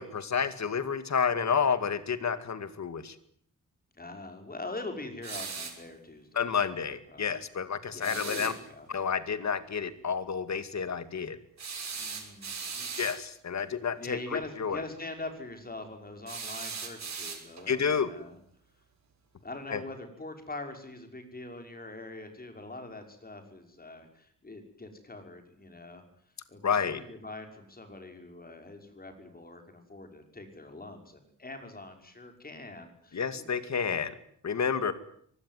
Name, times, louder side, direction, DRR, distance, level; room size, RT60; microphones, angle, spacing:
voice 1, 0.0-3.1 6.3-8.5 8.9-11.4 13.0-14.8 17.7-18.1 19.7-19.8 26.6-27.0 33.1-34.2 34.4-34.9, left 6 dB, 55° left, 12 dB, 2.3 m, -30 dB
voice 2, 4.0-6.8 7.1-7.4 7.9-8.9 12.0-12.9 14.0-18.4 19.4-26.0 26.5-33.5, left 2 dB, 30° left, 5 dB, 5.7 m, -43 dB
sound 1, 5.2-5.8 8.0-8.6 11.6-13.2 16.3-17.7, right 5 dB, 55° right, 6.0 m, -38 dB
24.0 x 21.0 x 9.6 m, 0.65 s
wide cardioid pair, 125°, 32 cm